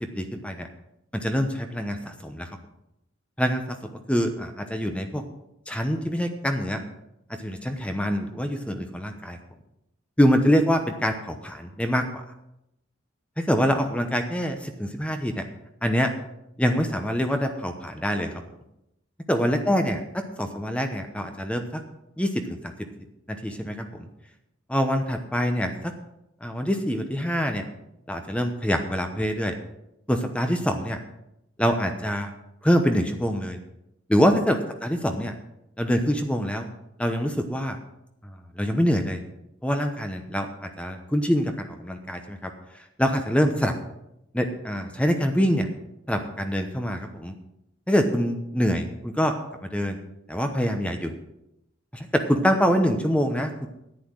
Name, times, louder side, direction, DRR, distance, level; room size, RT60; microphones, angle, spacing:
voice 1, 0.1-0.7 1.1-2.5 3.4-3.6 3.9-5.2 5.7-6.8 7.3-9.4 10.2-12.2 13.4-15.5 15.8-16.1 16.6-18.3 19.3-21.8 22.2-22.6 23.3-24.1 24.7-25.9 26.4-27.6 28.1-29.5 30.1-31.0 31.6-32.3 32.6-33.6 34.1-35.3 35.8-36.7 37.0-37.8 38.6-39.2 39.6-42.5 43.0-43.7 44.3-45.7 46.1-47.3 47.9-49.4 49.6-50.0 50.3-51.1 51.9-53.7, equal, 5° left, 6 dB, 0.9 m, -25 dB
10.5 x 9.4 x 6.3 m, 0.85 s
head